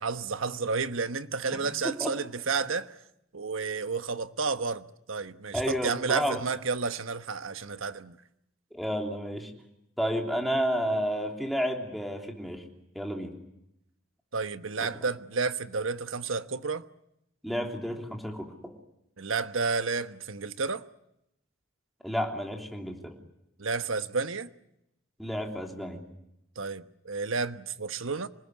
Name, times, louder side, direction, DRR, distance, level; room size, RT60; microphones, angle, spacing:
voice 1, 0.0-2.9 3.3-8.2 14.3-16.8 19.2-20.8 23.6-24.5 26.6-28.3, right 4 dB, 85° right, 1.2 m, -31 dB
voice 2, 1.5-2.1 5.5-6.4 8.7-9.5 10.0-12.6 12.9-13.4 17.4-18.7 22.0-23.1 25.2-26.0, equal, ahead, 3.3 m, -31 dB
26.5 x 20.0 x 9.7 m
head